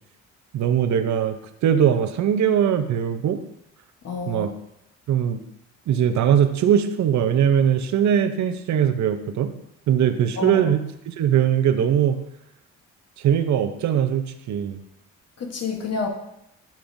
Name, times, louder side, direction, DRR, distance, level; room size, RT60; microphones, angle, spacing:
voice 1, 0.5-1.4 1.6-3.4 4.3-4.5 5.1-5.4 5.9-9.5 9.9-12.2 13.2-14.8, right 9 dB, 70° right, 9 dB, 0.7 m, -21 dB
voice 2, 4.0-4.5 10.4-10.7 15.4-16.1, left 5 dB, 55° left, 3 dB, 1.3 m, -28 dB
10.5 x 5.5 x 2.7 m, 0.81 s
cardioid pair, 90°, 30 cm